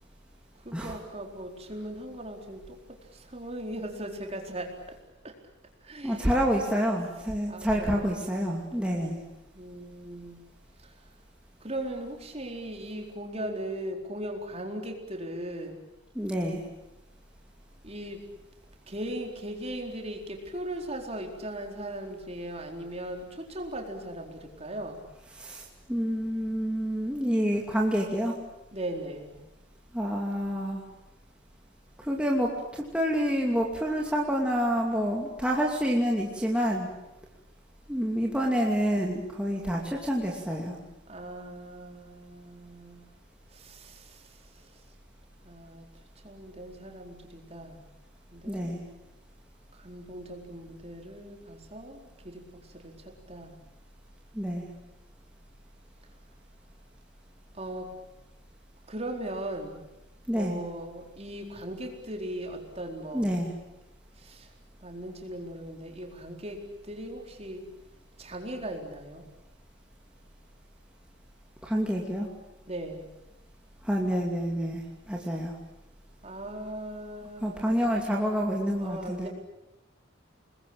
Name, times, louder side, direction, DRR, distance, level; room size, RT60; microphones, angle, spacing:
voice 1, 0.6-2.8 3.1-5.0 5.2-5.3 5.8-6.4 7.5-8.2 8.7-9.1 9.5-10.4 10.8-11.0 11.6-15.8 17.8-18.2 18.9-25.0 28.7-29.4 41.1-43.0 43.5-44.8 45.4-45.9 46.2-47.9 48.3-48.8 49.7-53.6 57.5-57.9 58.9-59.8 60.3-63.4 64.2-64.5 64.8-67.6 68.2-69.2 72.7-73.1 76.2-77.9 78.7-79.3, right 1 dB, 30° right, 2 dB, 4.3 m, -39 dB
voice 2, 6.0-9.2 16.1-16.6 25.3-28.3 29.9-30.8 32.0-36.9 37.9-40.8 48.5-48.8 54.3-54.7 60.3-60.6 63.1-63.5 71.6-72.3 73.8-75.6 77.4-79.3, equal, 5° right, -2 dB, 2.7 m, -28 dB
28.0 x 21.0 x 8.8 m, 0.94 s
head